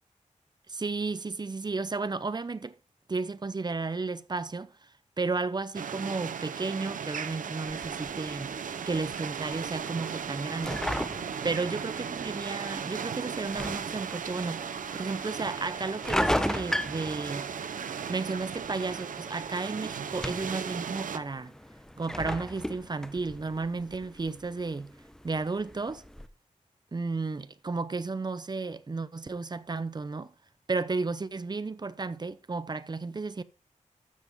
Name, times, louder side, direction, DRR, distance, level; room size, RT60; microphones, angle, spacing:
voice 1, 0.7-2.7 3.1-4.9 5.2-8.5 8.9-10.8 11.4-17.5 18.1-21.5 22.0-24.9 25.2-26.0 26.9-30.3 30.7-33.4, right 3 dB, 30° right, 0.7 m, -33 dB
sound 1, 5.7-21.2, right 7 dB, 85° right, 0.6 m, -36 dB
sound 2, 7.6-26.3, equal, 5° left, 0.7 m, -38 dB
12.5 x 7.3 x 3.6 m
wide cardioid pair, 85°, 13 cm